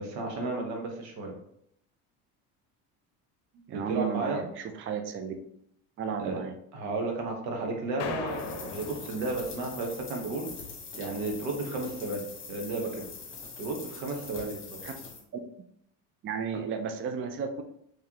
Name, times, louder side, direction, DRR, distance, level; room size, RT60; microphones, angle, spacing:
voice 1, 0.0-1.3 3.7-4.5 6.2-6.4 6.7-10.5 10.9-13.1 13.6-14.8, right 2 dB, 85° right, 1 dB, 1.1 m, -33 dB
voice 2, 3.7-5.3 6.0-6.5 14.8-14.9 16.2-17.6, right 6 dB, 35° right, 6 dB, 0.4 m, -33 dB
sound 1, 8.0-10.4, left 6 dB, 70° left, 0.6 m, -39 dB
sound 2, 8.3-15.2, left 4 dB, 30° left, 1.0 m, -44 dB
3.7 x 3.2 x 2.8 m, 0.72 s
supercardioid pair, 100°, 38 cm